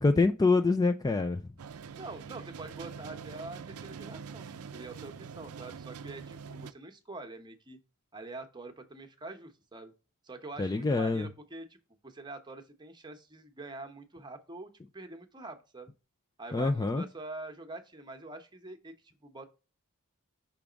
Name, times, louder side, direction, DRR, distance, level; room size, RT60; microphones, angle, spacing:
voice 1, 0.0-1.4 10.6-11.3 16.5-17.0, left 3 dB, 15° left, 0.3 m, -25 dB
sound 1, 1.6-6.7, right 6 dB, 75° right, 0.4 m, -44 dB
voice 2, 1.9-7.8 8.1-9.9 10.2-11.8 12.0-15.9 16.4-18.9 19.2-19.5, right 2 dB, 20° right, 1.0 m, -45 dB
5.9 x 3.5 x 5.0 m
head